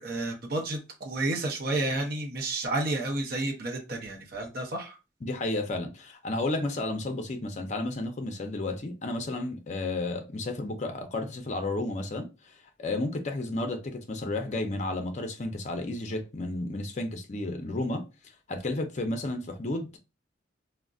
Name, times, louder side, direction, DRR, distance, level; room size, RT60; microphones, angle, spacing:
voice 1, 0.0-5.0, right 2 dB, 50° right, 0.7 m, -31 dB
voice 2, 5.2-12.5 12.8-18.0 18.5-20.0, left 2 dB, 40° left, 0.5 m, -32 dB
3.7 x 2.1 x 2.3 m
head